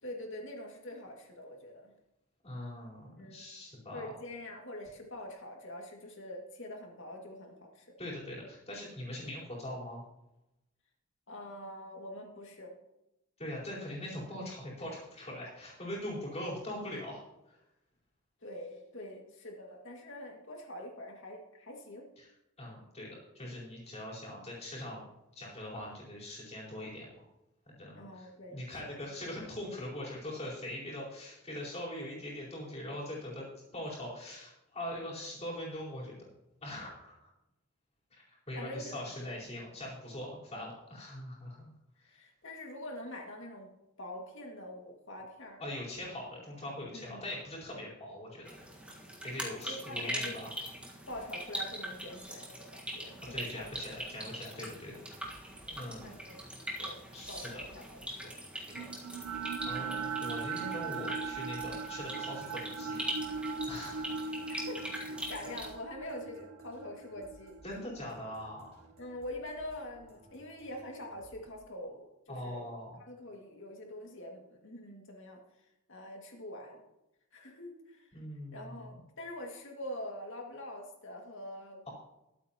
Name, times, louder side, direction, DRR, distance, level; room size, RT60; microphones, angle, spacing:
voice 1, 0.0-1.9 3.2-3.4 3.9-7.9 11.3-12.7 18.4-22.1 28.0-28.9 38.5-39.0 42.1-45.7 46.9-47.3 47.7-47.9 49.7-50.5 51.1-53.9 56.0-56.5 56.8-57.0 57.3-58.3 58.6-58.9 64.5-67.6 69.0-72.7 73.0-75.4 75.9-76.8 77.3-78.2 78.5-81.9, left 1 dB, 60° left, 1 dB, 2.2 m, -45 dB
voice 2, 2.4-4.1 8.0-10.0 13.4-17.6 22.2-22.3 22.6-25.0 25.3-27.1 27.7-33.5 33.7-36.2 36.6-37.2 38.1-41.7 45.6-48.5 49.2-50.5 53.3-55.0 55.7-56.1 57.1-57.6 58.7-58.9 59.6-63.0 63.7-64.0 67.6-68.7 72.3-73.0 78.1-79.0, left 1 dB, 30° left, -5 dB, 4.4 m, -42 dB
sound 1, 48.5-65.7, equal, 5° right, 1.6 m, -42 dB
sound 2, 52.9-71.4, equal, 30° right, 4.8 m, -60 dB
sound 3, 58.7-68.9, right 5 dB, 75° right, 0.8 m, -39 dB
21.5 x 8.4 x 3.0 m, 0.92 s
head